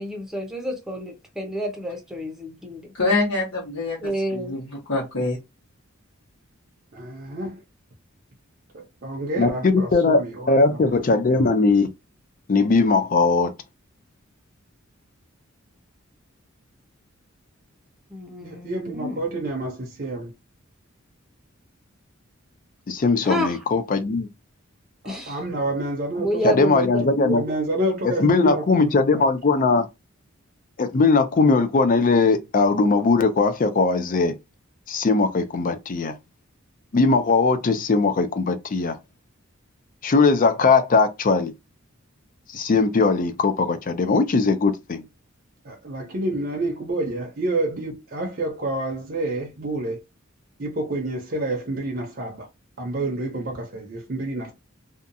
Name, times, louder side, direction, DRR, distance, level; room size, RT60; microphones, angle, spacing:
voice 1, 0.0-2.9 4.0-4.6 18.1-19.2 23.2-23.6 25.0-25.4 26.2-27.3, equal, ahead, 0.7 m, -29 dB
voice 2, 2.9-5.4, left 2 dB, 85° left, 1.1 m, -25 dB
voice 3, 6.9-7.6 8.7-11.0 18.4-20.3 25.0-29.3 45.6-50.0 50.6-52.5 52.8-54.5, right 2 dB, 45° right, 0.7 m, -29 dB
voice 4, 9.4-10.2 10.5-11.9 12.5-13.5 22.9-24.3 26.4-27.4 28.2-29.8 30.8-34.3 34.9-36.2 36.9-39.0 40.0-41.5 42.5-45.0, left 3 dB, 40° left, 0.4 m, -19 dB
2.7 x 2.3 x 2.6 m
head